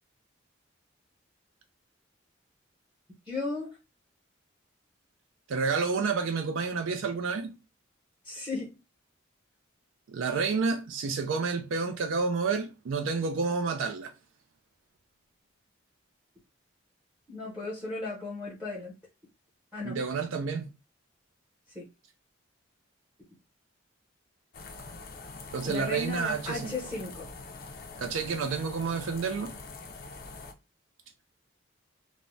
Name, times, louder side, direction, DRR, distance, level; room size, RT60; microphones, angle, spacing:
voice 1, 3.3-3.8 8.2-8.8 17.3-18.9 19.7-20.0 21.7-21.9 25.6-27.3, left 3 dB, 10° right, 0.7 m, -35 dB
voice 2, 5.5-7.5 10.1-14.1 19.8-20.7 25.5-26.7 28.0-29.6, right 4 dB, 75° right, 0.4 m, -29 dB
sound 1, 24.5-30.5, left 3 dB, 45° left, 0.4 m, -44 dB
3.3 x 2.0 x 2.6 m
head